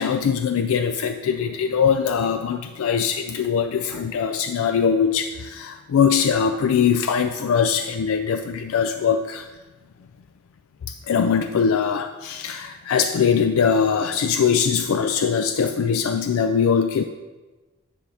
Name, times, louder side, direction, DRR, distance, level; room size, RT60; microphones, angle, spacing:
voice 1, 0.0-9.5 11.1-17.0, left 6 dB, 85° left, 8 dB, 0.4 m, -21 dB
10.0 x 3.4 x 6.3 m, 1.2 s
head